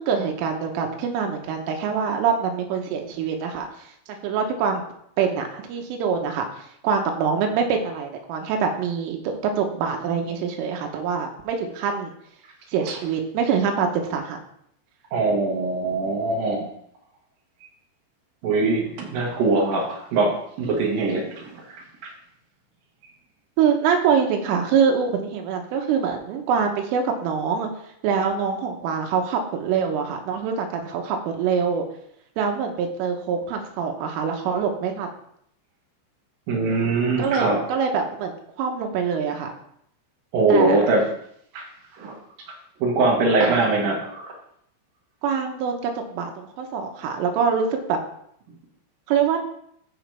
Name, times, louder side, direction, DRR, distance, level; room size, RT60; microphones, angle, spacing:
voice 1, 0.0-3.9 4.2-4.8 5.2-12.1 12.7-14.4 23.6-27.7 28.0-31.9 32.4-35.1 37.2-38.3 38.6-39.5 40.5-40.8 45.2-48.0 49.1-49.4, right 6 dB, 80° right, 3 dB, 3.6 m, -24 dB
voice 2, 15.1-16.7 18.4-21.5 36.5-37.6 40.3-41.0 41.5-41.6 42.0-42.1 42.8-44.3, right 3 dB, 55° right, -1 dB, 2.9 m, -22 dB
14.5 x 5.0 x 3.4 m, 0.69 s
omnidirectional pair, 5.8 m